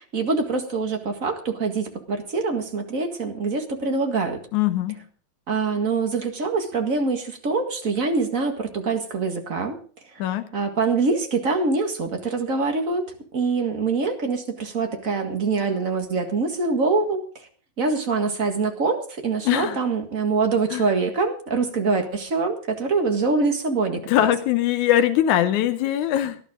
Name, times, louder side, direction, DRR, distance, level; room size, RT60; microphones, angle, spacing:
voice 1, 0.0-4.4 5.5-9.8 10.5-17.3 17.8-24.0, right 4 dB, 30° right, 4 dB, 1.8 m, -24 dB
voice 2, 4.5-5.0 10.2-10.5 19.5-19.8 20.7-20.9 24.1-26.4, left 12 dB, 85° left, 9 dB, 2.3 m, -21 dB
18.5 x 12.0 x 3.7 m, 0.41 s
omnidirectional pair, 3.3 m